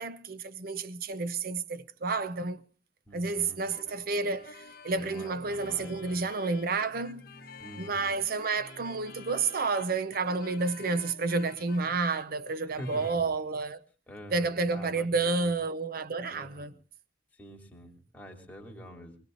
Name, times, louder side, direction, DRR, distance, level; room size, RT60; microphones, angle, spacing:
voice 1, 0.0-2.6 3.1-7.3 7.8-13.8 14.3-16.7, right 4 dB, 55° right, 0.8 m, -30 dB
voice 2, 3.1-3.6 5.0-6.2 7.6-8.1 12.7-13.2 14.1-15.5 16.3-16.7 17.4-19.2, equal, 10° left, 3.1 m, -46 dB
sound 1, 3.4-13.3, left 4 dB, 55° left, 1.3 m, -50 dB
24.0 x 20.0 x 2.6 m
head